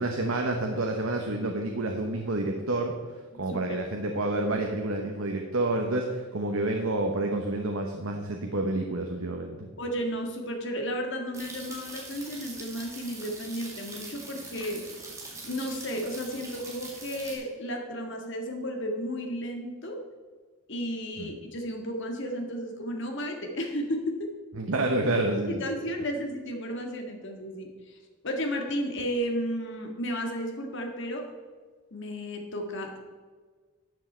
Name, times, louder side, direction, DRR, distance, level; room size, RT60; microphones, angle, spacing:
voice 1, 0.0-2.9 3.4-9.7 21.2-21.3 24.6-25.7, right 2 dB, 70° right, 2 dB, 1.1 m, -29 dB
voice 2, 3.3-3.8 9.8-14.8 15.4-20.0 20.7-24.3 25.5-28.0 28.2-31.3 31.9-33.0, equal, 55° left, 3 dB, 1.7 m, -33 dB
sound 1, 11.3-17.3, right 3 dB, 15° right, 1.9 m, -43 dB
12.5 x 7.4 x 4.5 m, 1.5 s
head